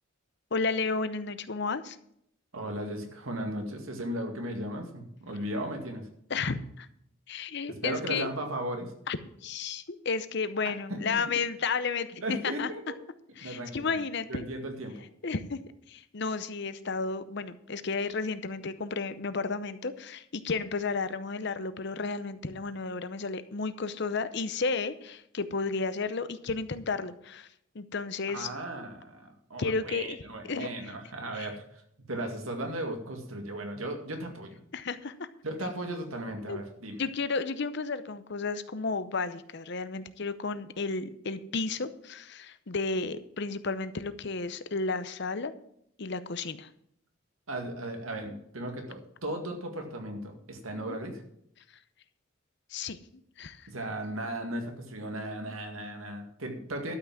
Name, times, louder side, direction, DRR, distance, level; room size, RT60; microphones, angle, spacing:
voice 1, 0.5-2.0 6.3-6.9 7.3-8.3 9.1-9.2 9.4-12.7 13.4-14.5 15.2-27.5 27.7-28.5 29.6-30.2 30.5-30.7 31.3-31.5 34.7-35.3 36.5-36.6 37.0-45.5 46.0-46.7 50.9-51.0 52.7-53.0 53.4-53.7, left 4 dB, 55° left, 13 dB, 0.7 m, -32 dB
voice 2, 2.5-6.1 7.8-8.9 10.6-10.7 12.2-12.8 13.4-14.0 14.3-15.1 28.3-31.8 32.1-34.6 35.4-37.0 47.5-51.2 53.7-56.9, right 1 dB, 85° right, 4 dB, 2.1 m, -36 dB
12.5 x 6.0 x 7.3 m, 0.72 s
head